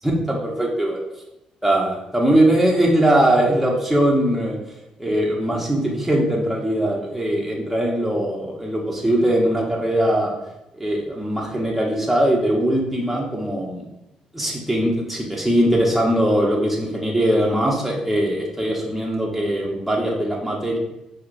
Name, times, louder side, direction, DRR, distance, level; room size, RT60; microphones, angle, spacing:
voice 1, 0.3-1.0 1.6-4.6 5.0-10.3 10.8-13.9 14.3-20.8, right 1 dB, 5° right, -3 dB, 0.8 m, -21 dB
4.4 x 2.1 x 2.5 m, 0.87 s
supercardioid pair, 65°, 2 cm